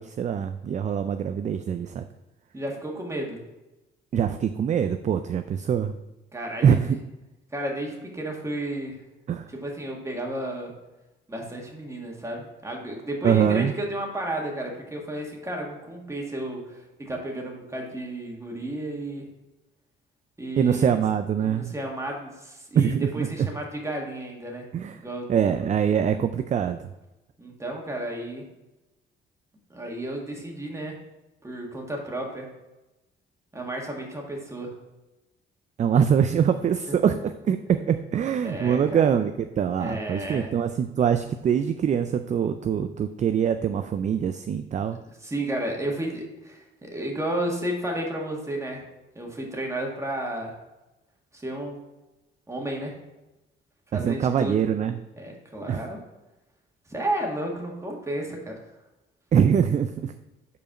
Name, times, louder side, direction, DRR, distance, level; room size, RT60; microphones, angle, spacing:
voice 1, 0.0-2.0 4.1-5.9 6.6-7.0 9.3-9.5 13.2-13.7 20.6-21.7 22.7-23.5 24.7-25.0 25.3-26.9 35.8-45.0 53.9-55.0 55.7-55.8 59.3-60.1, right 8 dB, 40° right, 9 dB, 0.4 m, -23 dB
voice 2, 2.5-3.4 6.3-7.0 7.5-9.0 9.5-10.7 11.3-19.3 20.4-21.0 21.4-24.7 24.9-25.3 27.4-28.5 29.7-31.0 31.4-32.5 33.5-34.7 36.9-37.1 38.4-39.0 39.8-40.5 45.1-48.8 49.2-50.6 51.3-51.8 52.5-53.0 53.9-54.6 55.2-56.0 56.9-58.6, right 1 dB, 15° right, 0 dB, 1.8 m, -32 dB
5.1 x 4.7 x 5.9 m, 1.0 s
cardioid pair, 90°, 20 cm